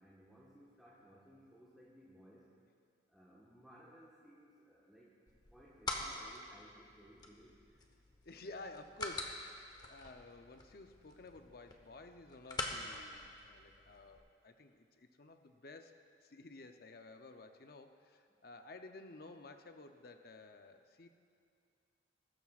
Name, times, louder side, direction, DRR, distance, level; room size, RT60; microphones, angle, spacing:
voice 1, 0.0-2.6 3.1-5.2 5.5-7.6 18.3-18.4, equal, ahead, -7 dB, 1.3 m, -61 dB
sound 1, 5.3-14.2, left 2 dB, 25° left, 1.0 m, -46 dB
voice 2, 8.2-16.0 16.2-21.1, left 2 dB, 55° left, 6 dB, 0.7 m, -53 dB
20.5 x 13.0 x 2.5 m, 2.3 s
head